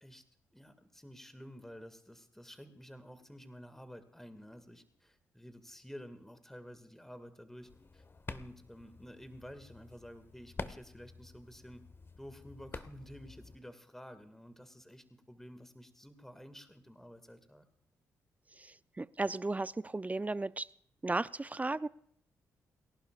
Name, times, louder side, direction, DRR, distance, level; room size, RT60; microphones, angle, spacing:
voice 1, 0.5-8.0 8.3-11.8 12.2-17.7, equal, 5° left, 9 dB, 2.1 m, -51 dB
sound 1, 7.6-13.6, left 3 dB, 35° left, 1.1 m, -48 dB
voice 2, 19.0-20.7 21.0-21.9, right 2 dB, 20° right, 16 dB, 0.6 m, -34 dB
29.0 x 11.5 x 2.5 m, 0.68 s
hypercardioid pair, 45°, 7 cm